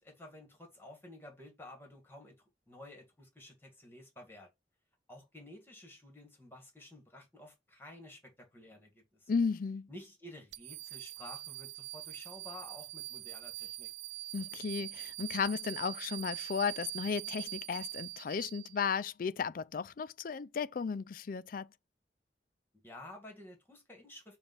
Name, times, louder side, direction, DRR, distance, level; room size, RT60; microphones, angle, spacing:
voice 1, 0.0-2.3 2.7-4.5 5.1-9.3 9.9-13.9 22.8-24.4, left 1 dB, 15° left, 1.9 m, -52 dB
voice 2, 9.3-9.9 14.3-21.7, left 5 dB, 50° left, 0.4 m, -34 dB
sound 1, 10.5-19.0, right 20 dB, 75° right, 0.5 m, -43 dB
7.0 x 2.5 x 5.5 m
head